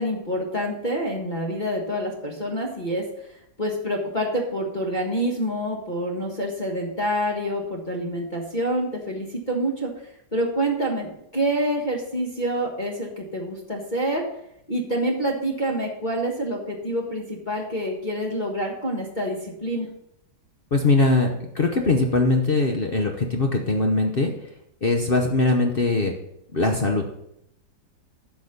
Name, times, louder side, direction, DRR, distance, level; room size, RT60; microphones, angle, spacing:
voice 1, 0.0-3.0 3.6-9.9 10.3-14.2 14.7-19.9, right 1 dB, 25° left, -1 dB, 1.5 m, -27 dB
voice 2, 20.7-24.3 24.8-26.1 26.5-27.0, left 3 dB, 45° left, 3 dB, 0.7 m, -21 dB
10.5 x 6.2 x 5.2 m, 0.78 s
omnidirectional pair, 2.0 m